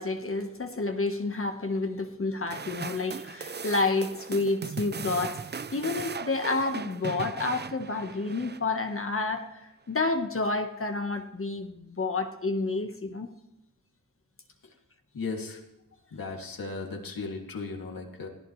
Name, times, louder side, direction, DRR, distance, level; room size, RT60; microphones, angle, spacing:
voice 1, 0.0-13.3, left 3 dB, 40° left, 5 dB, 1.4 m, -30 dB
sound 1, 2.5-9.0, right 5 dB, 30° right, 0.5 m, -38 dB
voice 2, 15.1-15.6 16.1-18.3, left 4 dB, 80° left, 1 dB, 2.6 m, -36 dB
19.5 x 15.0 x 3.3 m, 0.93 s
cardioid pair, 65°, 34 cm